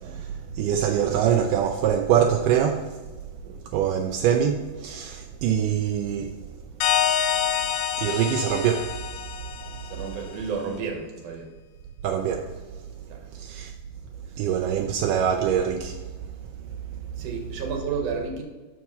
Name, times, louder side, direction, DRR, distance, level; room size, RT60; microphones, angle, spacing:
voice 1, 0.5-2.8 3.7-6.4 8.0-8.9 12.0-12.5 13.3-13.7 14.4-16.0, right 9 dB, 80° right, 2.1 m, -24 dB
sound 1, 6.8-10.2, left 9 dB, 85° left, 2.2 m, -27 dB
voice 2, 9.9-11.5 13.1-13.2 17.2-18.4, right 5 dB, 60° right, 2.2 m, -31 dB
7.2 x 6.1 x 5.4 m
omnidirectional pair, 3.8 m